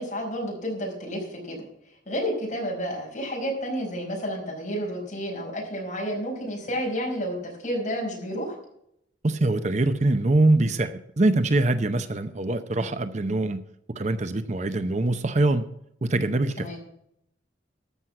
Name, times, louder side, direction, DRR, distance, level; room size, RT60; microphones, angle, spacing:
voice 1, 0.0-1.6 2.1-8.6 16.6-16.8, equal, 40° left, -1 dB, 5.1 m, -30 dB
voice 2, 9.2-13.6 14.0-15.6 16.0-16.8, right 2 dB, 40° right, 10 dB, 0.7 m, -23 dB
13.5 x 6.3 x 8.4 m, 0.74 s
head